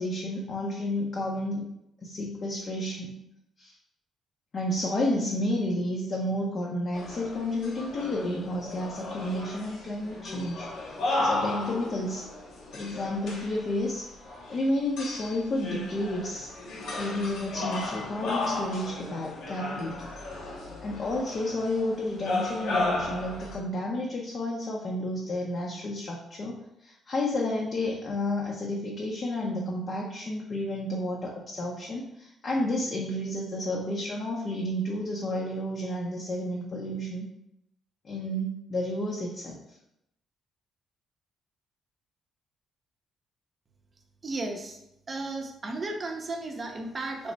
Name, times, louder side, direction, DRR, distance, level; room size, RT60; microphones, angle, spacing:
voice 1, 0.0-1.6 2.0-3.2 3.6-3.7 4.5-14.1 14.5-16.5 17.0-20.1 20.8-37.2 38.0-39.8, left 1 dB, 50° left, -2 dB, 0.5 m, -31 dB
sound 1, 6.9-23.6, left 2 dB, 80° left, 0.8 m, -34 dB
voice 2, 44.2-44.8 45.1-47.3, right 2 dB, 35° right, 2 dB, 0.5 m, -34 dB
3.3 x 2.0 x 3.9 m, 0.83 s
cardioid pair, 90°, 0 cm